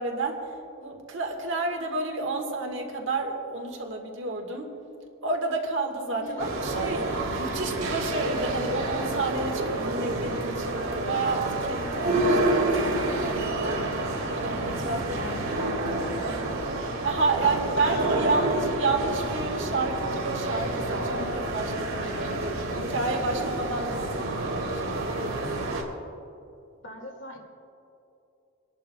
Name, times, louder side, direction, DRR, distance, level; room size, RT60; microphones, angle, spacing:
voice 1, 0.0-4.7 5.2-13.8 14.3-15.6 16.1-25.3, right 3 dB, 65° right, 2 dB, 1.6 m, -30 dB
sound 1, 6.4-25.8, right 2 dB, 90° right, 2.2 m, -29 dB
voice 2, 15.1-15.8 17.4-18.4 26.8-27.4, left 1 dB, 65° left, 0 dB, 2.1 m, -40 dB
26.0 x 11.5 x 2.3 m, 2.7 s
head